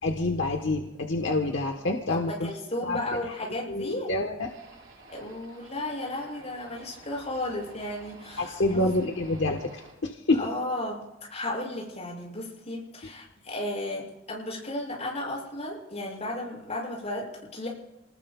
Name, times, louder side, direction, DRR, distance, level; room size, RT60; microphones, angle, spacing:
voice 1, 0.0-2.5 2.8-3.0 3.7-4.5 8.4-10.5, left 2 dB, 65° left, 2 dB, 1.3 m, -27 dB
voice 2, 2.1-4.1 5.1-8.9 10.4-17.7, left 1 dB, 35° left, -3 dB, 6.8 m, -34 dB
sound 1, 4.4-9.9, right 2 dB, 85° right, 5.6 m, -50 dB
29.5 x 20.0 x 2.4 m, 0.97 s
head